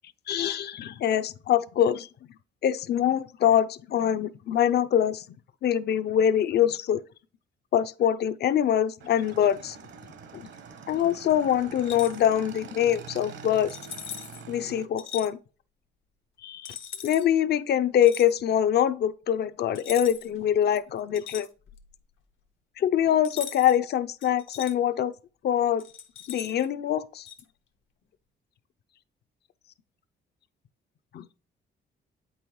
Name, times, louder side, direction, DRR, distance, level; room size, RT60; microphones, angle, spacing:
voice 1, 0.3-2.1 2.6-5.2 5.6-7.0 7.7-9.8 10.3-10.5 10.9-13.8 14.5-15.4 16.4-16.7 17.0-21.5 22.8-25.1 25.4-25.8 26.3-27.3 31.1-31.2, left 10 dB, 55° left, 0.5 m, -24 dB
Motorcycle / Engine, 9.0-14.8, right 6 dB, 65° right, 1.0 m, -44 dB
sound 1, 11.8-12.2 13.7-14.4 15.0-15.3 16.6-17.3 18.0-18.3 19.7-20.4 20.7-21.9 23.2-23.8 24.2-24.7 25.8-26.7 27.3-27.4, left 8 dB, 75° left, 0.9 m, -40 dB
8.3 x 5.5 x 3.0 m
cardioid pair, 90°, 20 cm